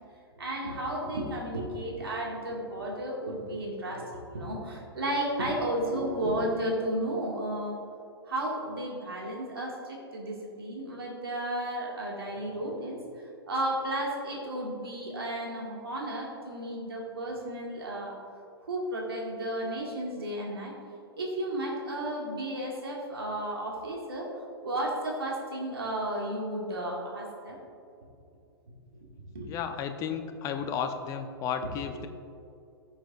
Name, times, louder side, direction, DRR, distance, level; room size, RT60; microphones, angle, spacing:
voice 1, 0.4-7.8 8.3-13.0 13.5-18.2 18.7-20.7 21.2-24.3 24.6-27.6 29.3-29.5, right 1 dB, 70° right, -2 dB, 2.0 m, -33 dB
voice 2, 29.4-32.1, left 7 dB, 25° left, 7 dB, 0.7 m, -33 dB
15.5 x 7.1 x 2.5 m, 2.6 s
figure-of-eight pair, 105°, 13 cm